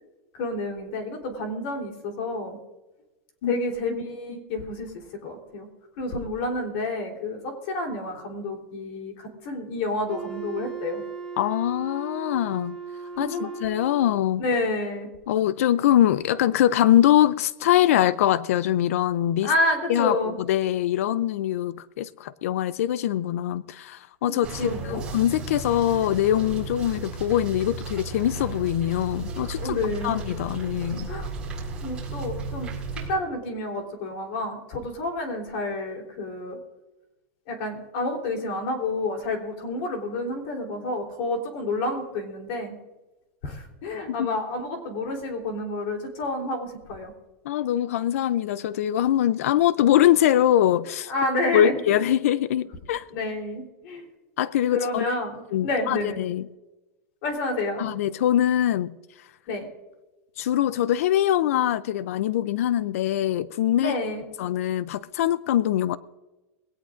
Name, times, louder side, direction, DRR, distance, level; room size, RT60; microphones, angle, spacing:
voice 1, 0.3-2.6 3.4-4.9 5.2-5.7 6.0-11.0 13.2-13.5 14.4-15.1 19.4-20.4 24.3-25.0 29.6-30.2 31.1-31.3 31.8-36.6 37.5-42.7 43.4-47.1 51.1-51.8 53.1-54.1 54.7-56.2 57.2-57.8 59.5-59.7 63.8-64.2, left 2 dB, 50° left, 3.6 m, -29 dB
Wind instrument woodwind instrument, 10.1-14.4, right 5 dB, 5° left, 1.6 m, -37 dB
voice 2, 11.4-12.8 13.2-14.4 15.3-19.5 19.9-29.8 30.0-31.1 44.2-44.3 47.5-51.1 51.5-53.1 54.4-55.2 55.5-56.4 57.8-58.9 60.4-63.9 64.4-66.0, left 11 dB, 75° left, 0.5 m, -23 dB
sound 1, 24.4-33.1, right 3 dB, 10° right, 4.3 m, -34 dB
21.0 x 17.5 x 2.6 m
supercardioid pair, 175°, 8 cm